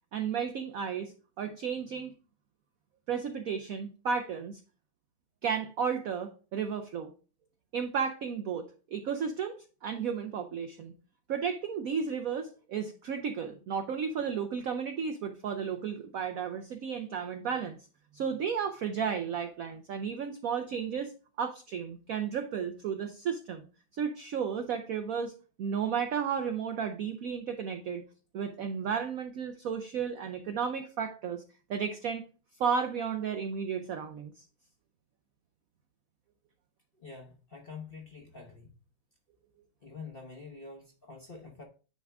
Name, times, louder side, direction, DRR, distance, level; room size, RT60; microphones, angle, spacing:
voice 1, 0.1-2.1 3.1-4.6 5.4-7.1 7.7-9.6 9.8-10.9 11.3-17.8 18.1-21.1 21.4-23.7 23.9-25.3 25.6-28.0 28.3-31.4 31.7-32.2 32.6-34.4, right 7 dB, 80° right, 0.7 m, -33 dB
voice 2, 37.0-38.7 39.8-41.6, left 4 dB, 40° left, 0.8 m, -46 dB
9.7 x 3.6 x 3.4 m
omnidirectional pair, 2.2 m